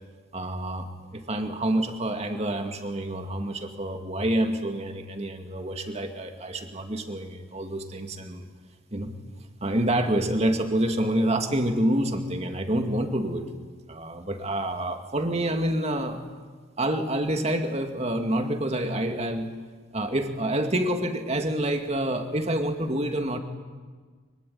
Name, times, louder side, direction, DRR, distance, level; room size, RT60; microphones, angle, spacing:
voice 1, 0.3-8.4 8.9-9.1 9.6-13.4 13.9-16.2 16.8-19.5 19.9-23.4, right 1 dB, 30° right, 5 dB, 2.3 m, -27 dB
24.5 x 24.0 x 9.5 m, 1.5 s
head